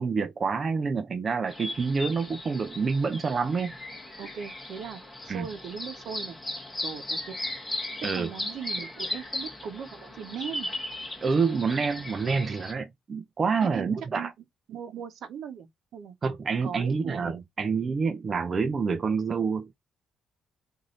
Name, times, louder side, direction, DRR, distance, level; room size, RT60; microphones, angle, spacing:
voice 1, 0.0-3.7 5.3-5.5 8.0-8.3 11.2-14.3 16.2-19.8, right 5 dB, 40° right, 0.5 m, -27 dB
sound 1, 1.5-12.7, left 1 dB, 15° left, 1.3 m, -37 dB
voice 2, 4.2-6.4 6.8-7.4 8.1-10.7 13.6-14.3 14.7-16.1 16.5-17.4, right 8 dB, 70° right, 0.9 m, -39 dB
3.0 x 2.6 x 3.9 m
cardioid pair, 90°, 0 cm